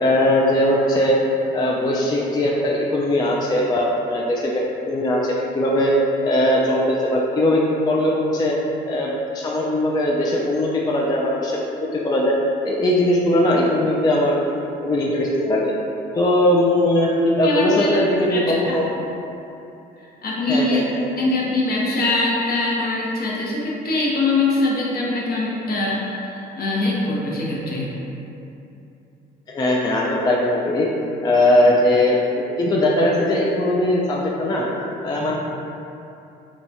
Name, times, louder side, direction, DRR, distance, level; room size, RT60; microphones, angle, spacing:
voice 1, 0.0-1.2 1.5-5.9 6.2-8.6 8.8-12.3 12.6-15.7 16.2-17.1 17.4-18.9 20.5-21.0 29.5-30.9 31.2-34.7 35.0-35.3, left 1 dB, 20° left, -3 dB, 0.3 m, -20 dB
voice 2, 17.0-18.0 18.3-18.7 20.0-20.8 21.2-27.9 35.1-35.3, left 2 dB, 50° left, -4 dB, 0.7 m, -23 dB
2.9 x 2.3 x 2.6 m, 2.8 s
supercardioid pair, 60°, 19 cm